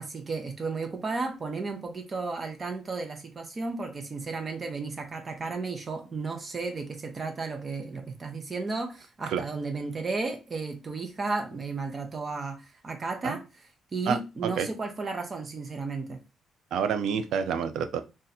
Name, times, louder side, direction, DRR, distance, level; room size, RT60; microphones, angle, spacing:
voice 1, 0.0-16.2, right 3 dB, 35° right, 0.7 m, -34 dB
voice 2, 16.7-18.0, right 7 dB, 80° right, 0.5 m, -28 dB
2.7 x 2.5 x 4.1 m
cardioid pair, 90°, 0 cm